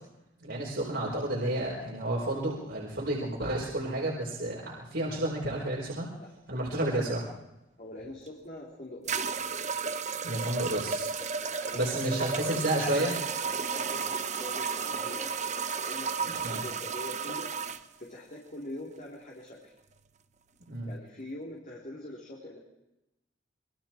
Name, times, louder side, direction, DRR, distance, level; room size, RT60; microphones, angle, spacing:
voice 1, 0.4-6.1 6.5-7.2 10.2-11.1 11.7-13.2 16.3-16.6 20.7-20.9, right 1 dB, 60° right, -4 dB, 4.8 m, -31 dB
voice 2, 6.8-7.2 7.8-9.3 11.2-12.6 13.6-15.3 15.7-17.5 18.0-19.7 20.9-22.6, left 1 dB, 40° left, -3 dB, 3.8 m, -44 dB
sound 1, 8.3-8.4 9.1-17.8, right 5 dB, 35° right, 1.0 m, -33 dB
sound 2, 11.4-16.9, right 1 dB, 20° left, 2.8 m, -47 dB
27.0 x 22.5 x 4.6 m, 0.92 s
head